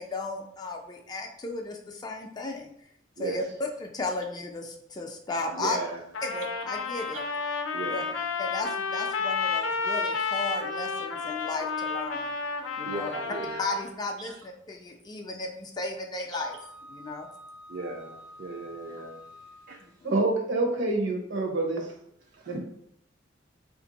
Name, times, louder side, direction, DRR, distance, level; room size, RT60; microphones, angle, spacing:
voice 1, 0.0-2.7 3.2-5.8 6.2-7.2 7.9-8.0 8.4-12.3 12.8-13.1 13.6-16.6 16.9-17.3 19.8-20.1, left 2 dB, 20° left, 3 dB, 0.3 m, -35 dB
voice 2, 3.2-3.5 5.5-6.0 7.7-8.2 11.2-11.3 12.8-13.6 14.3-14.4 17.7-19.2 19.7-19.8 22.3-22.6, right 3 dB, 45° right, 0 dB, 0.4 m, -37 dB
Trumpet, 6.1-13.9, left 4 dB, 85° left, 0.4 m, -31 dB
Wind instrument woodwind instrument, 16.3-19.9, left 1 dB, 85° right, 1.1 m, -49 dB
voice 3, 20.0-21.9 22.5-22.6, right 2 dB, 65° right, 2 dB, 0.8 m, -26 dB
2.9 x 2.5 x 3.9 m, 0.71 s
head